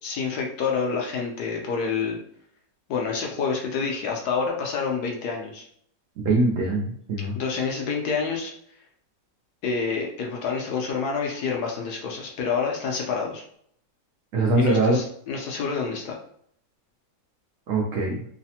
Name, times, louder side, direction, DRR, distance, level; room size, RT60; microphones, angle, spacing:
voice 1, 0.0-2.2 2.9-5.7 7.3-8.5 9.6-13.4 14.6-16.2, left 5 dB, 70° left, 0 dB, 1.0 m, -28 dB
voice 2, 6.2-7.3 14.3-15.0 17.7-18.2, right 2 dB, 85° right, -2 dB, 0.7 m, -22 dB
3.2 x 2.0 x 2.7 m, 0.65 s
omnidirectional pair, 1.9 m